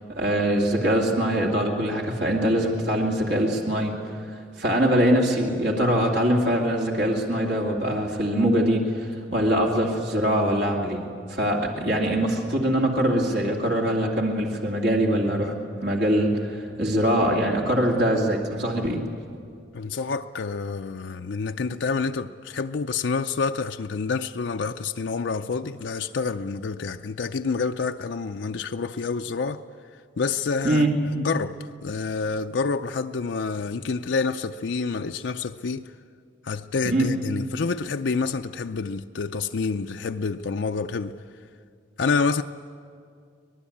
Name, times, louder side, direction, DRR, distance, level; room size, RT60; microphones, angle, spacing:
voice 1, 0.1-3.9 4.6-15.5 15.8-19.0 30.6-30.9 36.8-37.1, right 1 dB, 70° right, 2.5 m, -23 dB
voice 2, 19.7-29.6 30.2-30.9 31.1-35.9 36.4-41.1 42.0-42.4, left 4 dB, 75° left, 0.5 m, -28 dB
24.5 x 19.5 x 8.6 m
head